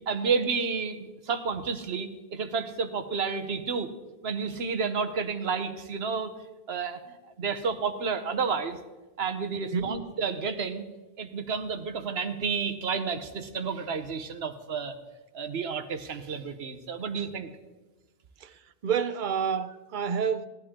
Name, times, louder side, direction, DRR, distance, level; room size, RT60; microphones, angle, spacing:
voice 1, 0.1-3.9 4.2-6.3 6.7-8.8 9.2-10.8 11.2-15.0 15.3-17.5, right 5 dB, 80° right, 1.2 m, -31 dB
voice 2, 18.4-20.5, right 7 dB, 55° right, 0.7 m, -29 dB
17.0 x 11.5 x 3.7 m
omnidirectional pair, 1.0 m